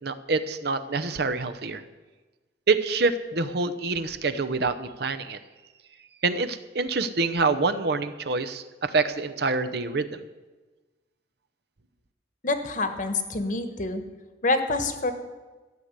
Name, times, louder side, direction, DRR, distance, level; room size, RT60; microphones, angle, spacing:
voice 1, 0.0-1.8 2.7-5.4 6.2-10.2, right 3 dB, 65° right, 10 dB, 0.8 m, -26 dB
voice 2, 12.4-14.0 14.4-15.1, left 2 dB, 50° left, 8 dB, 1.3 m, -26 dB
13.5 x 6.7 x 9.6 m, 1.2 s
head